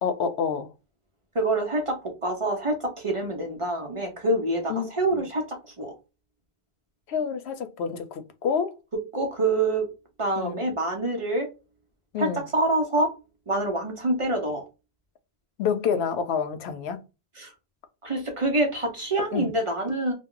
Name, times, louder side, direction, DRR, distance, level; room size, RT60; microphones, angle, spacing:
voice 1, 0.0-0.7 4.7-5.2 7.1-8.7 10.4-10.6 12.1-12.4 15.6-17.0 19.3-19.5, left 6 dB, 90° left, 0.8 m, -28 dB
voice 2, 1.3-5.9 9.1-9.9 10.2-11.5 12.2-13.1 13.5-14.6 17.4-17.5 18.0-20.1, right 2 dB, 40° right, 0.6 m, -26 dB
2.2 x 2.0 x 3.6 m
omnidirectional pair, 1.1 m